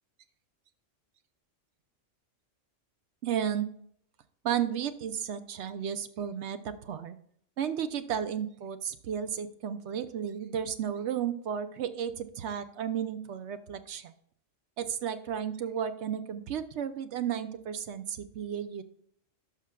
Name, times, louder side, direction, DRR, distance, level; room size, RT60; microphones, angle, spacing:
voice 1, 3.2-3.7 4.4-7.2 7.6-14.1 14.8-18.8, right 8 dB, 65° right, 10 dB, 0.9 m, -33 dB
11.5 x 6.1 x 2.3 m, 0.66 s
omnidirectional pair, 1.3 m